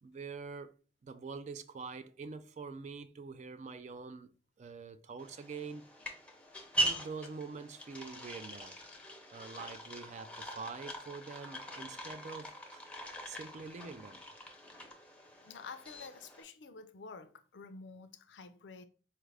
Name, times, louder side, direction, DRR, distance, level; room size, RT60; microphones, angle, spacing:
voice 1, 0.0-0.7 1.0-4.3 4.6-5.8 6.7-8.8 9.3-12.8 13.3-14.2, right 4 dB, 40° right, 0.3 m, -45 dB
sound 1, 5.2-16.4, right 1 dB, 5° left, 0.6 m, -41 dB
voice 2, 15.4-18.8, left 4 dB, 90° left, 0.5 m, -49 dB
4.3 x 2.4 x 3.2 m
head